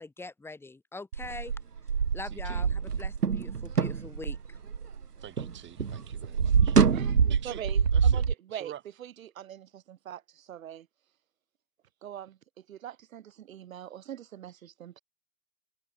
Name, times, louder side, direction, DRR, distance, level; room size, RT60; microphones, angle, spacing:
voice 1, 0.0-1.5 2.1-4.6, left 3 dB, 5° left, 1.4 m, -43 dB
sound 1, 1.1-5.5 5.8-8.3, right 6 dB, 85° right, 0.9 m, -25 dB
voice 2, 2.2-2.7 5.2-6.8 7.3-7.6 7.9-8.2 8.5-8.8, right 11 dB, 25° right, 5.7 m, -47 dB
voice 3, 6.9-8.7 9.0-10.9 12.0-12.4 12.7-15.0, right 10 dB, 60° right, 6.0 m, -43 dB
figure-of-eight pair, 100°, 45 cm